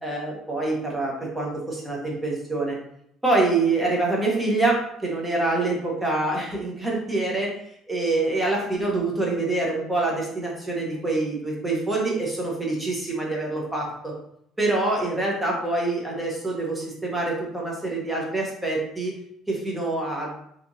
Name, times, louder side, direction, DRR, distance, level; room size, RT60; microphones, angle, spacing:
voice 1, 0.0-2.8 3.2-7.5 7.9-14.1 14.6-19.2 19.5-20.3, right 2 dB, 10° right, -2 dB, 0.7 m, -25 dB
2.8 x 2.4 x 2.6 m, 0.72 s
cardioid pair, 130°, 0 cm